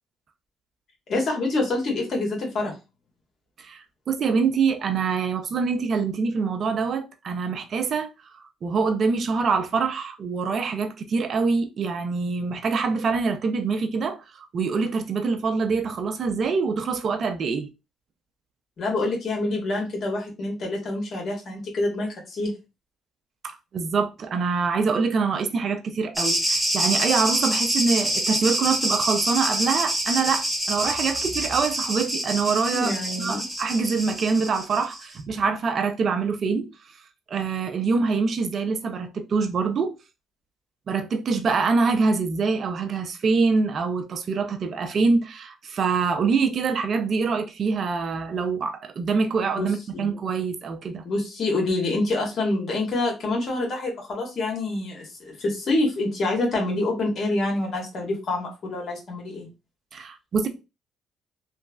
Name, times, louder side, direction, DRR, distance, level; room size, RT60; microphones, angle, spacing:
voice 1, 1.1-2.7 18.8-22.5 32.7-33.4 49.6-49.7 49.9-50.1 51.0-59.5, left 2 dB, 55° left, 1.4 m, -26 dB
voice 2, 3.6-17.7 23.4-32.9 33.2-36.7 37.3-40.0 40.9-51.0 59.9-60.5, right 5 dB, 55° right, 0.5 m, -25 dB
sound 1, 26.2-35.0, right 1 dB, ahead, 1.6 m, -26 dB
3.1 x 2.5 x 2.3 m
supercardioid pair, 70°, 0 cm